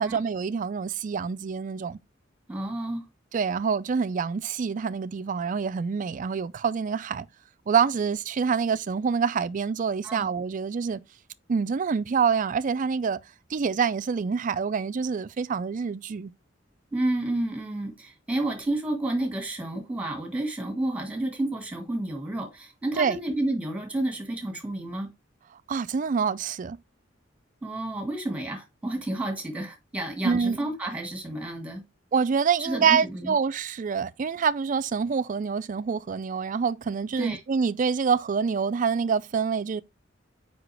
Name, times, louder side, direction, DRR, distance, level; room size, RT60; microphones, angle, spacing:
voice 1, 0.0-2.0 3.3-7.3 7.7-11.0 11.5-13.2 13.5-16.3 23.0-23.2 25.7-26.8 30.2-30.6 32.1-39.8, right 6 dB, 40° right, 0.4 m, -26 dB
voice 2, 2.5-3.1 10.0-10.3 16.9-25.1 27.6-31.8 32.6-33.3 37.2-37.4, right 1 dB, 5° right, 1.8 m, -30 dB
6.0 x 5.1 x 3.3 m
head